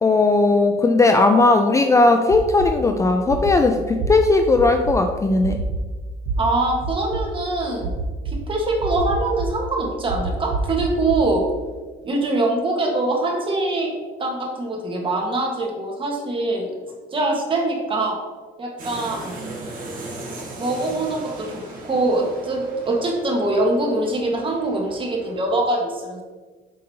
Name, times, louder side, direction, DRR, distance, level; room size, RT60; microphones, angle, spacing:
voice 1, 0.0-5.6, left 3 dB, 20° left, 5 dB, 0.4 m, -17 dB
sound 1, 2.3-2.7 3.3-3.5 4.0-4.1 4.6-4.9 5.4-5.8 6.3-6.4 6.8-7.2 7.8-8.3 8.8-9.5 10.1-11.2, right 4 dB, 90° right, 1.1 m, -27 dB
voice 2, 6.4-7.9 8.2-11.4 12.0-13.9 14.2-16.7 17.1-18.2 18.6-19.4 20.6-26.2, right 2 dB, 30° right, 0 dB, 1.5 m, -23 dB
sound 2, 18.8-25.4, right 2 dB, 55° right, 2.0 m, -37 dB
7.6 x 5.3 x 2.8 m, 1.4 s
cardioid pair, 110°, 17 cm